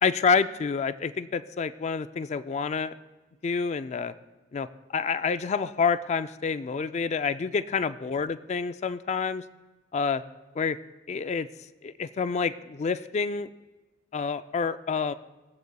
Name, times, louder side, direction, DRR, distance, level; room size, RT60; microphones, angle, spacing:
voice 1, 0.0-2.9 3.4-4.1 4.5-4.7 4.9-9.4 9.9-10.2 10.6-10.8 11.1-11.5 11.8-13.5 14.1-15.1, left 5 dB, 35° left, 12 dB, 0.3 m, -28 dB
19.0 x 7.8 x 2.3 m, 1.2 s
head